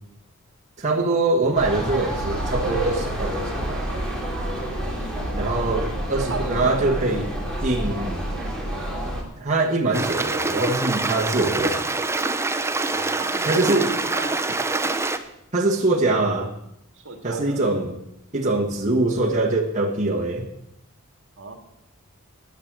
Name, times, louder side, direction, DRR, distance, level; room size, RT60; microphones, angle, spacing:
voice 1, 0.8-3.9 5.3-7.2 7.6-8.2 9.0-11.9 13.4-14.0 15.5-16.5 17.2-18.0 18.3-20.5, right 2 dB, 35° right, -2 dB, 1.6 m, -23 dB
sound 1, 1.6-9.2, right 1 dB, 5° left, 3.2 m, -28 dB
voice 2, 4.8-5.6 6.3-7.0 12.9-14.4 16.9-17.6 21.4-21.5, right 4 dB, 60° right, 4 dB, 2.3 m, -36 dB
Stream, 9.9-15.2, right 3 dB, 10° right, 0.8 m, -25 dB
12.5 x 9.9 x 7.5 m, 0.81 s
head